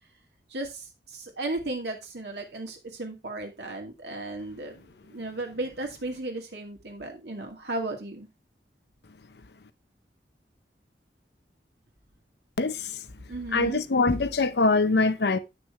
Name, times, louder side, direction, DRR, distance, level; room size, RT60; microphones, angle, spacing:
voice 1, 0.5-4.8 5.1-8.3 13.3-13.8, right 2 dB, 75° right, 2.3 m, -35 dB
voice 2, 12.6-13.0 13.5-15.4, left 3 dB, 70° left, 0.7 m, -23 dB
8.9 x 6.1 x 3.4 m
head